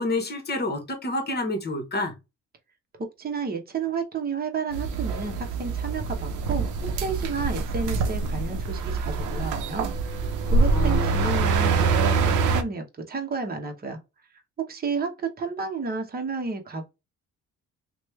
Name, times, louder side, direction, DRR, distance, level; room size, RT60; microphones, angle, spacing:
voice 1, 0.0-2.1 10.7-11.3, left 2 dB, 35° left, 1.1 m, -28 dB
voice 2, 3.0-10.2 10.5-14.0 14.6-16.9, right 4 dB, 30° right, 0.8 m, -31 dB
sound 1, 4.7-12.6, right 4 dB, 90° right, 0.6 m, -25 dB
3.0 x 2.2 x 3.1 m
cardioid pair, 90°, 30 cm